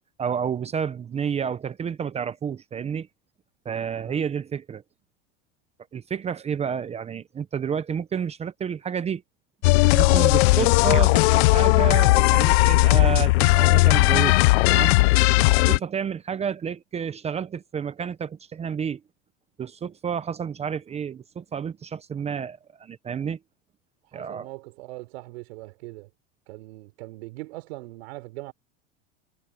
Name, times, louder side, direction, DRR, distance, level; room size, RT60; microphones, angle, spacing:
voice 1, 0.2-3.1 3.6-4.8 5.9-9.2 9.9-14.4 14.7-14.9 15.6-19.0 19.6-23.4 24.1-24.5, right 7 dB, 20° right, 0.7 m, -30 dB
sound 1, 9.6-15.8, left 22 dB, 80° left, 0.6 m, -17 dB
voice 2, 24.1-26.1 26.5-28.5, right 20 dB, 80° right, 3.9 m, -40 dB
supercardioid pair, 140°, 31 cm